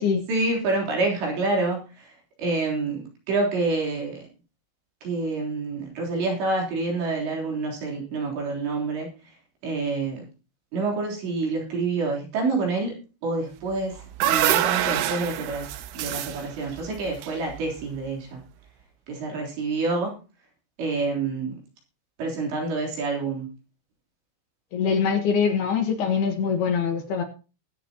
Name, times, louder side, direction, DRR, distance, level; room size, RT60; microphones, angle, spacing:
voice 1, 0.3-4.2 5.0-9.4 9.6-10.2 10.7-13.0 13.2-18.4 19.1-20.1 20.8-21.6 22.2-23.5, right 3 dB, 65° right, -1 dB, 5.6 m, -27 dB
sound 1, 13.7-18.0, right 13 dB, 85° right, 3.2 m, -26 dB
voice 2, 24.7-27.2, left 6 dB, 65° left, 4 dB, 3.1 m, -23 dB
20.5 x 9.4 x 2.9 m, 0.33 s
omnidirectional pair, 5.5 m